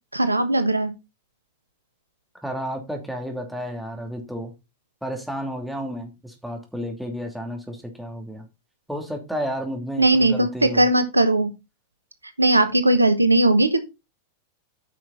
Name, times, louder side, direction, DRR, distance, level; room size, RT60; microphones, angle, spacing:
voice 1, 0.1-0.9 10.0-11.5 12.4-13.8, right 2 dB, 85° right, 1.1 m, -18 dB
voice 2, 2.4-4.5 5.0-8.5 8.9-10.9, equal, ahead, 2.7 m, -32 dB
9.8 x 6.1 x 4.2 m
figure-of-eight pair, 90°, 0 cm